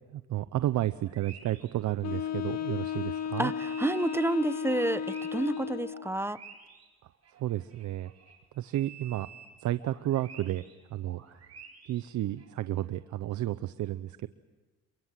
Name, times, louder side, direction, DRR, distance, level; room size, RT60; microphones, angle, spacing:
voice 1, 0.1-3.5 7.4-8.1 8.5-9.3 9.6-11.4 11.8-14.3, right 14 dB, 75° right, 13 dB, 0.8 m, -32 dB
sound 1, 1.1-3.3 3.6-8.4 8.7-12.5, right 6 dB, 55° right, 5.4 m, -52 dB
Wind instrument woodwind instrument, 2.0-6.1, left 7 dB, 60° left, 1.2 m, -34 dB
voice 2, 3.4-6.4, right 1 dB, 10° right, 14 dB, 0.9 m, -29 dB
28.5 x 23.5 x 7.6 m, 1.2 s
cardioid pair, 90°, 30 cm